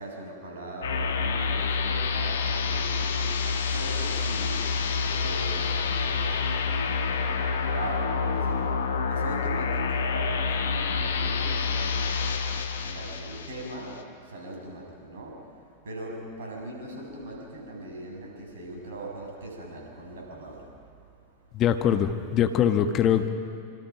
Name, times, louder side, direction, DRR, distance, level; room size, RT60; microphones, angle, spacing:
voice 1, 0.0-12.1 12.8-21.6, right 1 dB, 60° right, 0 dB, 6.7 m, -40 dB
sound 1, 0.8-14.0, left 5 dB, 65° left, 1.8 m, -28 dB
voice 2, 21.5-23.3, left 9 dB, 35° left, 8 dB, 1.3 m, -23 dB
26.0 x 26.0 x 5.9 m, 2.4 s
figure-of-eight pair, 90°, 0 cm